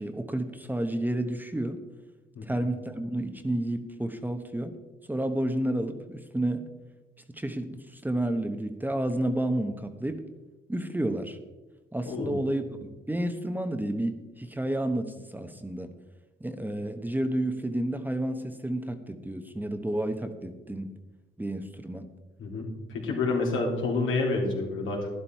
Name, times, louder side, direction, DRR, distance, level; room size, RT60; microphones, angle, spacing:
voice 1, 0.0-1.8 2.4-4.7 5.1-6.7 7.3-10.2 10.7-11.4 11.9-15.9 16.4-20.9 21.4-22.1, right 1 dB, 10° right, 7 dB, 1.0 m, -30 dB
voice 2, 12.0-12.4 22.4-25.1, left 3 dB, 80° left, -1 dB, 3.3 m, -29 dB
11.5 x 11.0 x 4.6 m, 1.1 s
cardioid pair, 90°, 20 cm